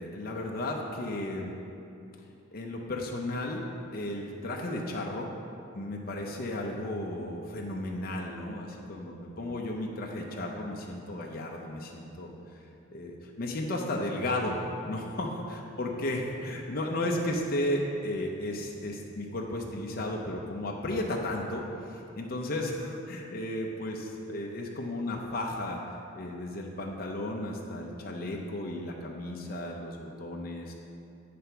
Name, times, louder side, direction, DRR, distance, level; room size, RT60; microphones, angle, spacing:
voice 1, 0.0-1.5 2.5-5.3 5.7-12.3 12.9-14.6 14.8-25.8 26.1-30.7, left 1 dB, 45° left, 0 dB, 0.5 m, -34 dB
9.3 x 3.4 x 5.7 m, 2.7 s
head